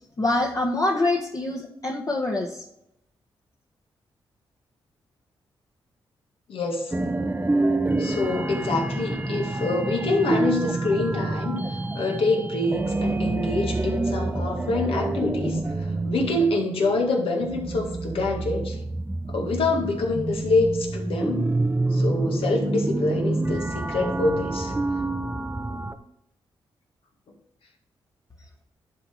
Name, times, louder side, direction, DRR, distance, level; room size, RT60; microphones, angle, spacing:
voice 1, 0.2-2.6, left 2 dB, 40° left, -2 dB, 1.4 m, -25 dB
voice 2, 6.5-7.0 8.0-18.8 19.3-21.5 21.9-24.7, left 2 dB, 70° left, 2 dB, 1.9 m, -26 dB
sound 1, 6.9-25.9, right 2 dB, 20° right, 0.7 m, -27 dB
11.0 x 4.2 x 4.6 m, 0.81 s
cardioid pair, 60°, 10 cm